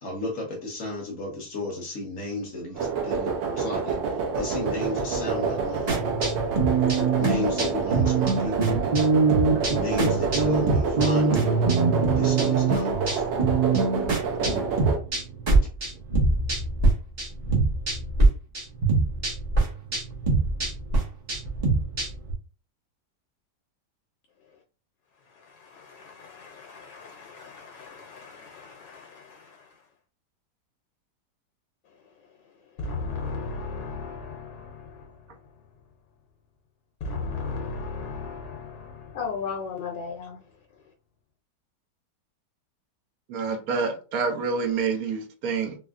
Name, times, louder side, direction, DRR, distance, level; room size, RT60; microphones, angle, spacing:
voice 1, 0.0-6.0 7.2-8.8 9.7-11.5 12.2-13.3, left 2 dB, 55° left, 1.0 m, -33 dB
sound 1, 2.8-15.0, right 5 dB, 80° right, 1.3 m, -28 dB
sound 2, 5.9-16.9 17.2-18.2 18.5-22.3, right 4 dB, 35° right, 0.7 m, -23 dB
voice 2, 25.2-29.9 31.8-35.7 37.0-40.9, left 4 dB, 85° left, 1.3 m, -37 dB
voice 3, 43.3-45.8, right 5 dB, 65° right, 1.0 m, -27 dB
3.9 x 2.4 x 2.4 m
omnidirectional pair, 1.9 m